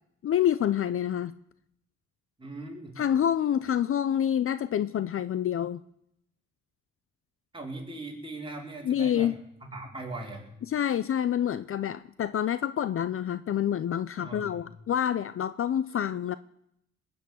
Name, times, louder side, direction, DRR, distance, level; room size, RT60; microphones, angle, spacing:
voice 1, 0.2-1.3 3.0-5.8 8.8-9.4 10.7-16.4, left 10 dB, 45° left, 16 dB, 0.6 m, -27 dB
voice 2, 2.4-3.0 7.5-9.3 9.6-10.5 14.2-14.6, right 2 dB, 15° right, -1 dB, 4.9 m, -39 dB
20.5 x 7.2 x 9.6 m, 0.76 s
cardioid pair, 90°, 30 cm